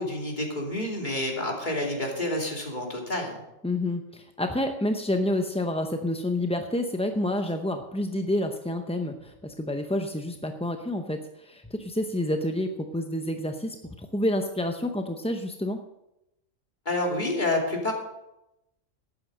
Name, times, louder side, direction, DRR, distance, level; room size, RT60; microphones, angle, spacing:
voice 1, 0.0-3.4 16.8-17.9, left 1 dB, 35° left, 0 dB, 3.0 m, -28 dB
voice 2, 3.6-15.8, left 1 dB, 10° left, 5 dB, 0.4 m, -29 dB
12.5 x 9.2 x 6.4 m, 0.89 s
omnidirectional pair, 1.4 m